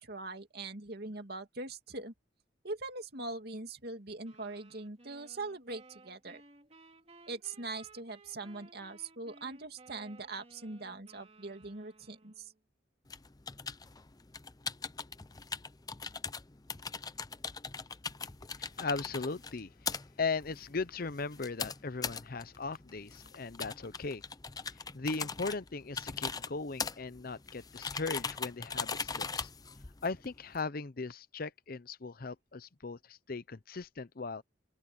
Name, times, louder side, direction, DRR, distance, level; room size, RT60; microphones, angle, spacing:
voice 1, 0.0-2.1 2.6-6.4 7.3-12.5, right 3 dB, 60° right, 2.5 m, -42 dB
sound 1, 4.2-12.6, right 3 dB, 35° right, 2.7 m, -58 dB
sound 2, 13.1-30.6, left 5 dB, 20° left, 0.6 m, -41 dB
voice 2, 18.8-19.7 20.2-24.2 24.9-29.5 30.0-34.4, left 4 dB, 55° left, 0.8 m, -38 dB
open air
head